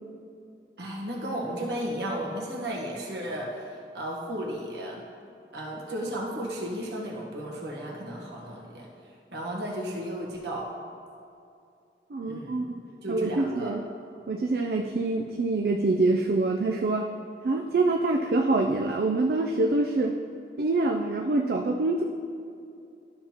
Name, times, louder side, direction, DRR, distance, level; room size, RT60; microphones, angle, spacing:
voice 1, 0.8-5.0 5.5-8.9 9.3-10.7 12.2-12.7 13.0-13.7, right 1 dB, 75° right, -2 dB, 1.2 m, -34 dB
voice 2, 12.1-12.7 13.1-13.8 14.3-17.1 17.4-20.2 20.6-22.0, right 2 dB, 60° right, 2 dB, 0.4 m, -25 dB
12.0 x 5.7 x 2.9 m, 2.5 s
head